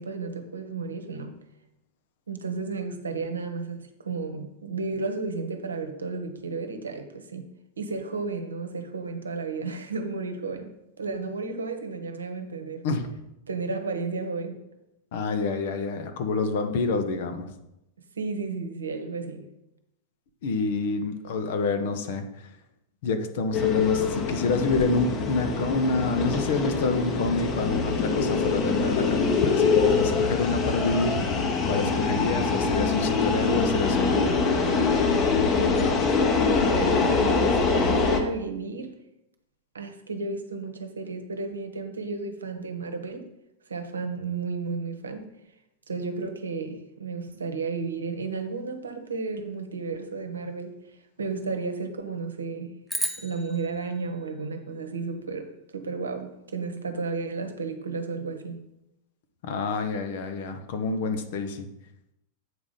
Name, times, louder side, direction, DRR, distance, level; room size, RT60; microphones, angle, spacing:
voice 1, 0.0-1.4 2.3-7.5 7.8-12.9 13.5-14.6 18.2-19.5 35.6-36.3 36.6-39.0 39.7-43.3 43.7-45.3 45.9-50.8 51.2-52.8 53.2-58.6, right 4 dB, 70° right, 1.0 m, -33 dB
voice 2, 15.1-17.5 20.4-22.2 23.0-34.4 59.4-61.7, left 3 dB, 55° left, 1.0 m, -28 dB
sound 1, 23.5-38.2, left 4 dB, 30° left, 1.2 m, -24 dB
sound 2, 52.9-55.3, equal, ahead, 0.9 m, -35 dB
8.0 x 4.9 x 5.6 m
figure-of-eight pair, 90°, 0 cm